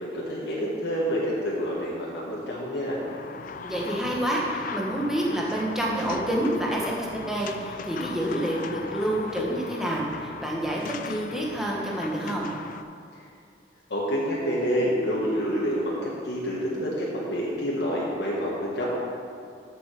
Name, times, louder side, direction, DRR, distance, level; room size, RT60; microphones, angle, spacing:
voice 1, 0.0-3.0 13.9-18.8, equal, 70° left, -6 dB, 1.5 m, -28 dB
sound 1, 3.1-12.8, left 5 dB, 45° left, 0.3 m, -38 dB
voice 2, 3.6-12.5, right 1 dB, 5° right, -4 dB, 1.2 m, -28 dB
7.0 x 7.0 x 6.6 m, 2.4 s
head